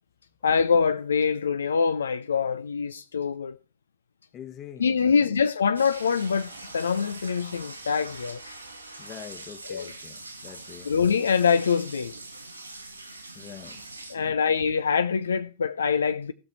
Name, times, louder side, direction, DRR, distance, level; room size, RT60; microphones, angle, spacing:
voice 1, 0.4-3.6 4.8-8.5 9.7-9.9 10.8-12.1 14.1-16.3, left 6 dB, 70° left, 0.6 m, -24 dB
voice 2, 4.3-5.4 9.0-10.9 13.3-13.8 14.2-14.5, left 10 dB, 30° left, 1.3 m, -44 dB
sound 1, 5.7-14.1, right 2 dB, 85° right, 2.0 m, -43 dB
16.0 x 6.6 x 4.7 m
figure-of-eight pair, 90°, 0 cm